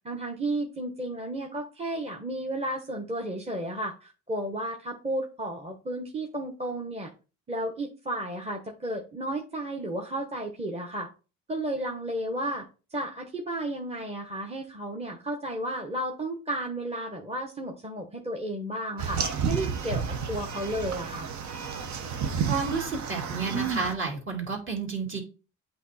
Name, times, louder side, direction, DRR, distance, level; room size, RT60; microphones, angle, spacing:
voice 1, 0.0-7.1 7.5-11.1 11.5-12.6 12.9-21.3, right 1 dB, 20° right, 1 dB, 1.2 m, -33 dB
sound 1, 19.0-23.9, right 6 dB, 70° right, 1.0 m, -31 dB
voice 2, 22.5-25.2, right 4 dB, 40° right, 1 dB, 2.6 m, -31 dB
8.2 x 2.9 x 4.1 m, 0.33 s
cardioid pair, 90°, 30 cm